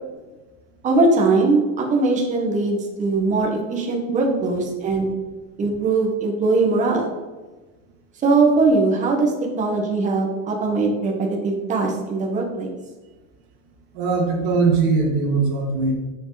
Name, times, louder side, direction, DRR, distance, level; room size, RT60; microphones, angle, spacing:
voice 1, 0.8-5.1 5.6-7.1 8.2-12.7, right 3 dB, 20° right, -1 dB, 1.5 m, -20 dB
voice 2, 4.1-4.4 13.9-15.9, right 4 dB, 45° right, 0 dB, 2.4 m, -21 dB
10.0 x 6.8 x 4.1 m, 1.3 s
supercardioid pair, 165°, 40 cm